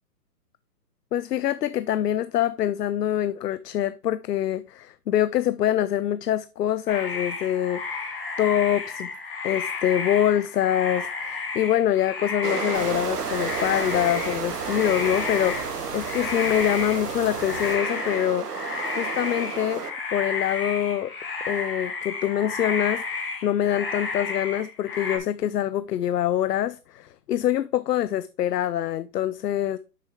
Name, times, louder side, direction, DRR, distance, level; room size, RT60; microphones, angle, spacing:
voice 1, 1.1-8.0 8.4-9.1 9.4-18.5 19.0-19.8 20.1-21.1 21.5-23.0 23.4-29.8, left 11 dB, 75° left, 0.6 m, -25 dB
sound 1, 6.9-15.7 16.0-25.2, left 4 dB, 35° left, 1.7 m, -32 dB
sound 2, 12.4-19.9, right 6 dB, 70° right, 1.4 m, -32 dB
sound 3, 12.7-17.7, equal, 5° left, 0.8 m, -39 dB
7.7 x 6.6 x 3.6 m
hypercardioid pair, 180°, 48 cm